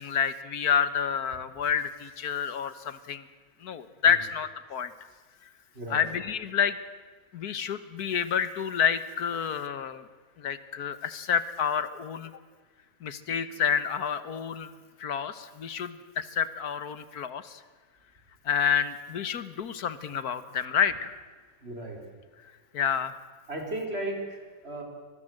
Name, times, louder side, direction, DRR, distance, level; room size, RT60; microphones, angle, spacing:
voice 1, 0.0-3.3 3.6-4.9 5.9-6.8 7.3-10.0 10.4-12.3 13.0-14.7 15.0-17.6 18.5-21.1 22.7-23.1, left 7 dB, 85° left, 14 dB, 1.7 m, -29 dB
voice 2, 21.6-22.0 23.5-24.8, right 1 dB, 40° right, 2 dB, 4.6 m, -35 dB
25.0 x 20.5 x 7.8 m, 1.5 s
omnidirectional pair, 1.6 m